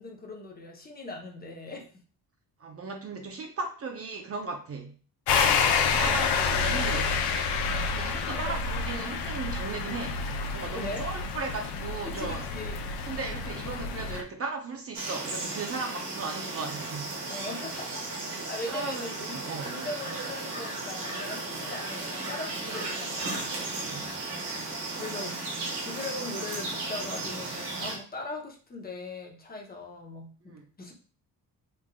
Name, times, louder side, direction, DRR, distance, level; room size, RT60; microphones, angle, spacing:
voice 1, 0.0-1.9 5.4-6.5 7.7-8.6 10.7-11.1 12.0-13.0 17.3-19.4 19.6-23.6 24.9-30.9, left 2 dB, 25° left, 1 dB, 0.7 m, -40 dB
voice 2, 2.6-4.9 5.8-7.1 7.9-10.2 10.5-12.5 13.1-17.2 18.7-19.1 19.3-19.7 23.7-24.1 30.4-30.7, right 4 dB, 35° right, 2 dB, 0.5 m, -36 dB
sound 1, 5.3-14.2, left 5 dB, 80° left, 0.6 m, -28 dB
sound 2, 14.9-28.0, right 2 dB, 80° right, 1.4 m, -35 dB
3.5 x 3.3 x 2.2 m, 0.40 s
cardioid pair, 110°, 39 cm